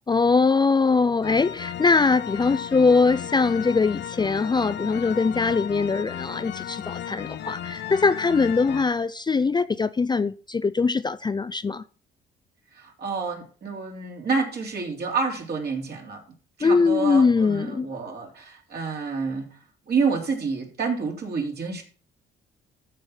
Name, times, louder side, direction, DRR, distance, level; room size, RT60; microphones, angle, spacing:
voice 1, 0.1-11.8 16.6-17.9, left 4 dB, 20° left, 0.4 m, -22 dB
sound 1, 1.2-8.9, left 10 dB, 60° left, 0.7 m, -35 dB
voice 2, 12.7-16.2 16.6-19.5 19.9-21.8, right 4 dB, 55° right, 3.3 m, -28 dB
13.5 x 4.9 x 5.8 m
cardioid pair, 90°, 20 cm